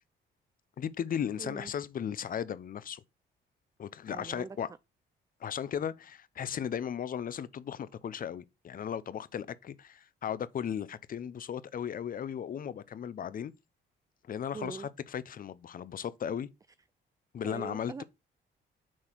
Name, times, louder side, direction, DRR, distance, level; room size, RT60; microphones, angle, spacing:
voice 1, 0.8-3.0 3.8-4.7 5.4-13.5 14.2-16.5 17.3-18.0, left 8 dB, 45° left, 0.6 m, -36 dB
voice 2, 1.4-1.7 4.1-4.6 14.5-14.9 16.3-16.4 17.4-18.0, right 4 dB, 20° right, 0.3 m, -42 dB
6.2 x 4.1 x 4.5 m
cardioid pair, 90°, 20 cm